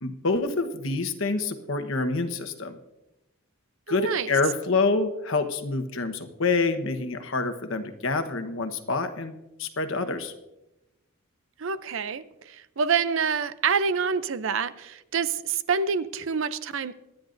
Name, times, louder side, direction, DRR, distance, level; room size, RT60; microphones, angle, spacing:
voice 1, 0.0-2.8 3.9-10.3, left 3 dB, 65° left, 1.2 m, -27 dB
voice 2, 3.9-4.3 11.6-16.9, right 6 dB, 65° right, 0.6 m, -27 dB
26.5 x 10.5 x 2.6 m
head